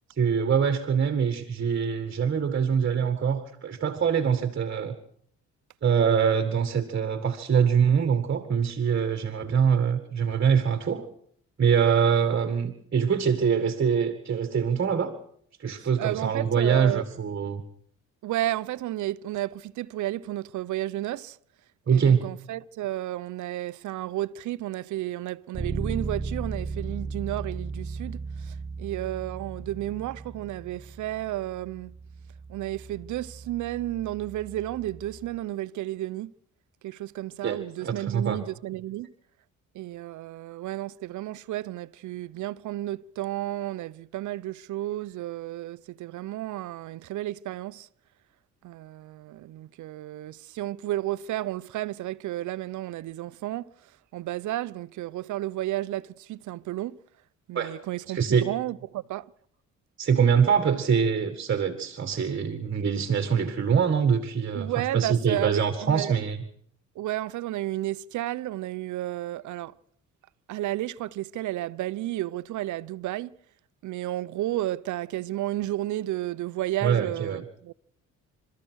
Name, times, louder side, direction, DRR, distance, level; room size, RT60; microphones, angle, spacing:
voice 1, 0.2-4.9 5.8-11.0 11.6-15.1 15.6-17.6 21.9-22.3 37.4-38.4 57.5-57.7 58.1-58.5 60.0-66.4 76.8-77.4, right 7 dB, 40° right, 2.0 m, -24 dB
voice 2, 15.8-17.0 18.2-21.4 21.9-31.9 32.5-36.3 36.8-39.1 39.7-47.9 48.6-53.7 54.1-57.0 57.5-59.3 64.5-66.1 67.0-69.7 70.5-73.4 73.8-77.7, right 15 dB, 75° right, 0.7 m, -32 dB
Bass guitar, 25.5-35.3, right 4 dB, 20° right, 2.6 m, -37 dB
30.0 x 13.5 x 6.4 m
cardioid pair, 90°, 30 cm